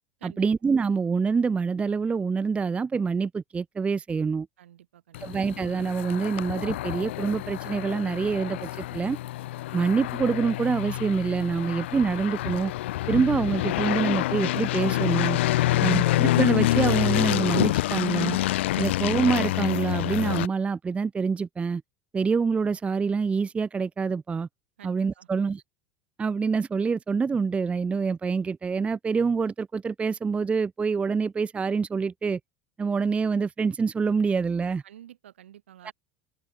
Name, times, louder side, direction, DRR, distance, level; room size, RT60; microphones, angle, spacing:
voice 1, 0.2-4.5 5.2-9.2 9.7-12.7 13.1-15.4 15.8-18.4 18.8-21.8 22.1-24.5 24.8-25.6 26.2-32.4 32.8-34.8 35.8-35.9, right 5 dB, 20° right, 0.4 m, -26 dB
voice 2, 4.6-5.3 15.6-16.1 18.7-18.9 24.8-25.3 34.8-35.9, right 11 dB, 70° right, 3.8 m, -50 dB
sound 1, 5.1-20.5, left 16 dB, 65° left, 0.9 m, -27 dB
open air
figure-of-eight pair, 75°, 7 cm